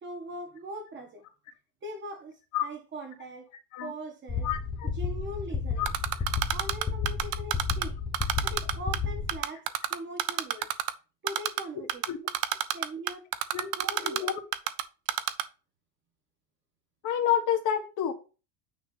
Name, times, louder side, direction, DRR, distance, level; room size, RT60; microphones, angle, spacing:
voice 1, 0.0-1.3 1.8-3.5 3.8-4.5 4.9-5.9 6.5-8.0 8.4-10.7 11.2-13.3 13.5-14.3, right 1 dB, 25° right, 1.6 m, -41 dB
sound 1, 4.3-9.4, left 5 dB, 10° left, 0.6 m, -32 dB
voice 2, 4.4-4.9 5.8-5.9 12.1-12.2 13.5-13.7 14.0-14.4 17.0-18.1, left 10 dB, 40° left, 1.4 m, -28 dB
Typing, 5.9-7.9 8.1-9.0 9.3-10.9 11.3-11.6 11.9-14.8 15.1-15.4, right 14 dB, 70° right, 1.0 m, -27 dB
9.5 x 3.2 x 5.8 m
cardioid pair, 160°, 48 cm